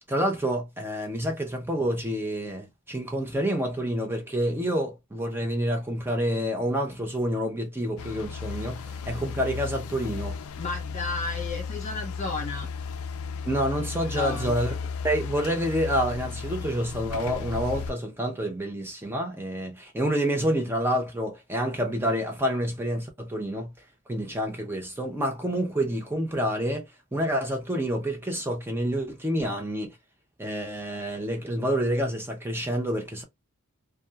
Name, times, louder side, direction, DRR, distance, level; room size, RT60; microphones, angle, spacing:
voice 1, 0.1-10.4 13.5-14.8 15.0-23.7 24.1-26.9 27.1-30.0 30.4-33.2, equal, 10° right, 0.5 m, -28 dB
sound 1, 8.0-17.9, left 5 dB, 65° left, 0.3 m, -34 dB
voice 2, 10.6-12.7 14.1-14.5, left 3 dB, 35° left, 1.0 m, -33 dB
2.7 x 2.2 x 2.3 m
head